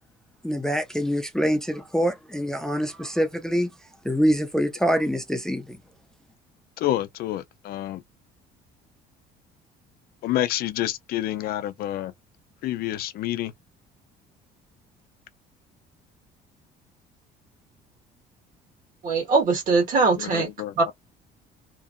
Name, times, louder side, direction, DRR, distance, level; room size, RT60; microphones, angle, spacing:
voice 1, 0.4-3.7 4.0-5.8, equal, 5° left, 0.5 m, -25 dB
voice 2, 6.8-8.0 10.2-12.1 12.6-13.5 20.2-20.9, left 13 dB, 65° left, 0.5 m, -28 dB
voice 3, 19.0-20.5 20.8-20.9, right 4 dB, 55° right, 1.5 m, -21 dB
2.9 x 2.6 x 2.5 m
cardioid pair, 120°, 17 cm